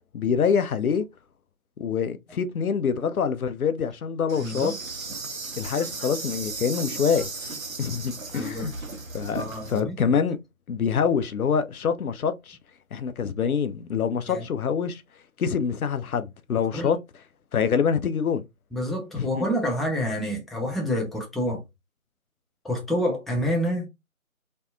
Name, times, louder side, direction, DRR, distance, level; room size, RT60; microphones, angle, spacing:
voice 1, 0.1-1.1 1.8-4.7 5.6-7.3 7.8-8.7 9.1-10.4 10.7-12.6 12.9-15.0 15.4-17.0 17.5-18.4 19.1-19.5, left 6 dB, 85° left, 0.5 m, -25 dB
Insect, 4.3-9.8, right 3 dB, 70° right, 0.8 m, -36 dB
voice 2, 4.4-4.8 8.3-8.7 9.3-10.1 14.3-14.4 16.7-16.9 18.7-21.6 22.6-23.9, equal, ahead, 0.4 m, -28 dB
2.6 x 2.2 x 2.3 m
figure-of-eight pair, 165°, 42 cm